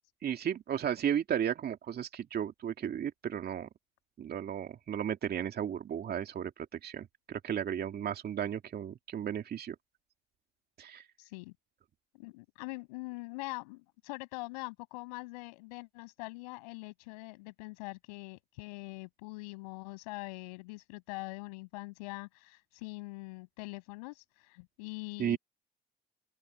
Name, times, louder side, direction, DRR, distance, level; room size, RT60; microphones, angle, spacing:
voice 1, 0.2-3.7 4.2-6.5 6.8-9.7 10.8-11.0 25.2-25.4, right 9 dB, 50° right, 2.5 m, -34 dB
voice 2, 11.2-11.5 12.2-25.4, left 27 dB, 85° left, 7.2 m, -43 dB
open air
hypercardioid pair, 60°, 20 cm